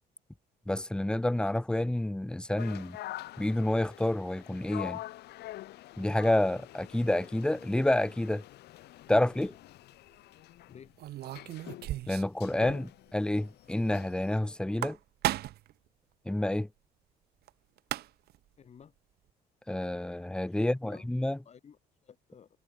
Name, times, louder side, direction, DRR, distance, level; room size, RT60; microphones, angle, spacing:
voice 1, 0.7-3.0 3.4-5.0 6.0-8.4 9.1-9.5 12.1-15.0 16.2-16.7 19.7-21.4, left 1 dB, 5° left, 1.0 m, -29 dB
sound 1, 2.6-14.4, left 16 dB, 80° left, 5.5 m, -46 dB
sound 2, 9.2-9.5 11.0-12.4 12.7-12.8 13.1-13.2 14.6-15.7 17.5-17.6 17.8-18.4, right 14 dB, 70° right, 1.9 m, -35 dB
voice 2, 18.6-18.9 20.6-21.1 21.4-22.5, left 7 dB, 40° left, 3.3 m, -53 dB
cardioid pair, 110°, 17 cm